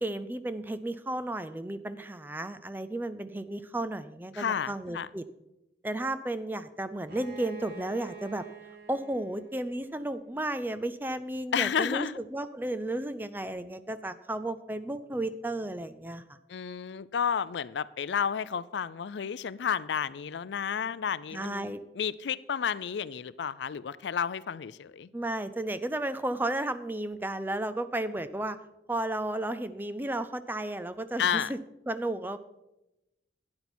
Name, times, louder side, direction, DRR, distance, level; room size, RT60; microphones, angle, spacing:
voice 1, 0.0-5.3 5.8-8.5 8.9-16.2 21.3-21.8 25.1-28.6 28.9-31.6 31.9-32.4, right 1 dB, 10° right, 12 dB, 0.4 m, -33 dB
voice 2, 4.3-5.1 11.5-12.2 16.5-25.1 31.2-31.5, left 7 dB, 75° left, 18 dB, 0.4 m, -31 dB
Bowed string instrument, 7.1-10.7, right 5 dB, 55° right, 2.0 m, -48 dB
12.0 x 9.7 x 4.4 m, 0.93 s
head